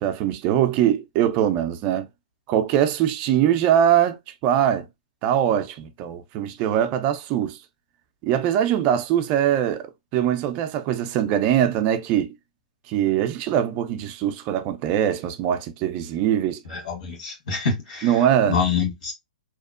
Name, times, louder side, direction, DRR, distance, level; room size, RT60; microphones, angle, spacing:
voice 1, 0.0-2.1 2.5-4.2 4.4-4.9 5.2-7.6 8.2-12.3 12.9-16.6 18.0-18.6, right 10 dB, 30° right, 0.4 m, -22 dB
voice 2, 16.7-18.1 18.5-19.1, left 5 dB, 65° left, 1.4 m, -26 dB
2.8 x 2.0 x 2.3 m
hypercardioid pair, 130°, 4 cm